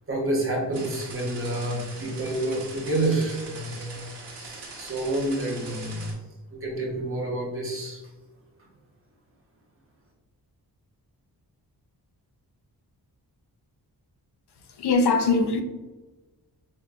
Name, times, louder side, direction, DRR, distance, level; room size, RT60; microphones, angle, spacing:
voice 1, 0.1-6.1 6.5-8.0, right 1 dB, 35° right, -2 dB, 1.0 m, -29 dB
sound 1, 0.7-6.1, right 3 dB, 80° right, 1.2 m, -42 dB
voice 2, 14.8-15.6, left 3 dB, 75° left, 5 dB, 0.6 m, -21 dB
5.6 x 2.8 x 2.4 m, 1.2 s
wide cardioid pair, 140°, 40 cm